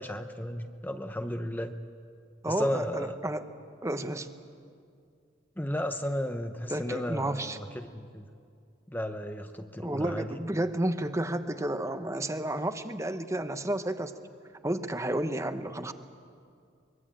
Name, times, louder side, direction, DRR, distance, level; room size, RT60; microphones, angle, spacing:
voice 1, 0.0-1.7 2.5-3.2 5.6-8.3 8.9-10.4, equal, 10° left, 7 dB, 0.8 m, -34 dB
voice 2, 2.4-3.4 3.8-4.3 6.7-7.6 9.8-14.1 14.6-15.9, right 1 dB, 15° right, 9 dB, 1.0 m, -31 dB
24.0 x 22.0 x 8.8 m, 2.3 s
head